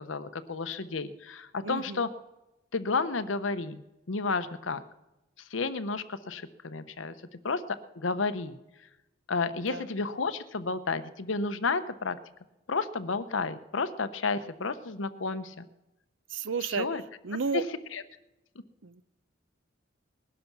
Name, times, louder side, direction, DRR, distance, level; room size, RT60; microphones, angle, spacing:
voice 1, 0.0-2.1 2.7-4.8 5.5-7.1 7.4-7.6 8.0-8.6 9.3-12.2 12.7-15.6 16.6-17.0 17.5-17.6 17.9-18.0, left 4 dB, 80° left, 0.9 m, -31 dB
voice 2, 1.6-2.0 9.7-9.9 16.3-16.9 17.2-17.6 18.8-19.0, right 5 dB, 75° right, 0.6 m, -32 dB
20.0 x 11.0 x 6.1 m
head